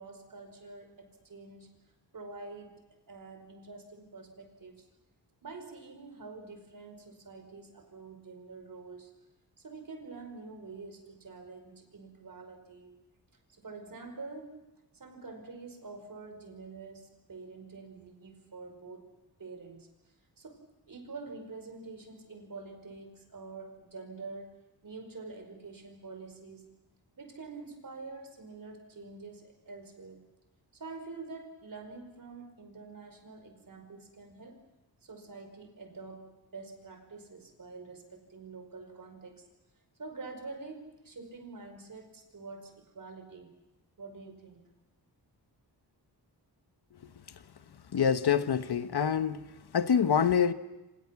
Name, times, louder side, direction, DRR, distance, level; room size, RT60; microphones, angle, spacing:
voice 1, 0.0-1.8 2.1-4.8 5.4-9.1 9.6-12.9 13.6-14.6 14.9-19.1 19.4-19.9 20.4-20.6 20.9-24.6 24.8-26.7 27.2-30.3 30.7-34.6 35.0-39.4 40.0-43.5 44.0-44.6, right 3 dB, 55° right, 5.3 m, -46 dB
voice 2, 47.9-50.5, left 7 dB, 70° left, 1.2 m, -26 dB
28.5 x 26.5 x 6.0 m
wide cardioid pair, 115°, 40 cm